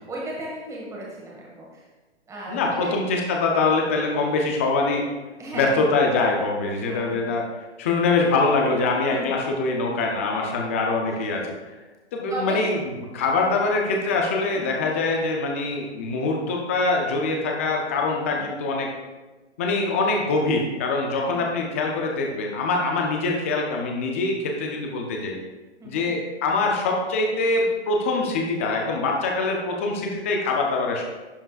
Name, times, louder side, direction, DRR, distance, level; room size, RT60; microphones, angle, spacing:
voice 1, 0.1-1.8 2.3-2.9 5.4-5.9 6.9-7.3 9.1-9.3 12.3-12.7 14.5-14.7 18.1-18.4 21.2-21.4 25.8-26.1, right 1 dB, 10° right, -4 dB, 1.5 m, -35 dB
voice 2, 2.5-5.0 5.5-7.5 7.8-11.5 12.1-18.9 19.6-25.4 25.8-31.0, left 3 dB, 15° left, 1 dB, 0.4 m, -24 dB
11.0 x 5.4 x 2.4 m, 1.2 s
hypercardioid pair, 135°, 35 cm